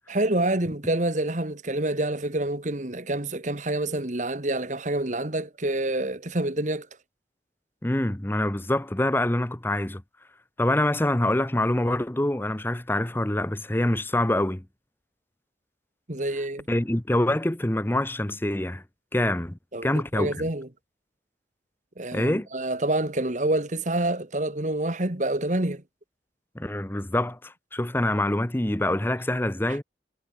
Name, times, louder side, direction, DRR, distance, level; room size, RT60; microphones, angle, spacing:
voice 1, 0.1-6.9 16.1-16.6 19.7-20.7 22.0-25.8, right 1 dB, 45° right, 1.9 m, -27 dB
voice 2, 7.8-10.0 10.6-14.6 16.7-18.8 19.1-20.5 22.1-22.5 26.5-29.8, left 1 dB, 10° left, 0.8 m, -25 dB
head